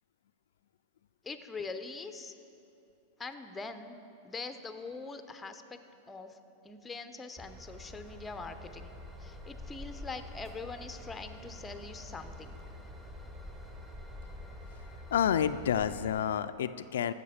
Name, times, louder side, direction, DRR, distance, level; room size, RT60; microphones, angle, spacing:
voice 1, 1.2-2.3 3.2-4.0 4.2-5.8 6.1-6.4 6.6-8.9 9.2-12.6, left 4 dB, 10° left, 8 dB, 0.5 m, -43 dB
Train / Engine, 7.4-16.1, left 1 dB, 10° right, 0.9 m, -47 dB
voice 2, 15.1-17.1, left 9 dB, 85° left, 11 dB, 0.3 m, -29 dB
14.0 x 6.6 x 5.0 m, 2.7 s
supercardioid pair, 145°, 0 cm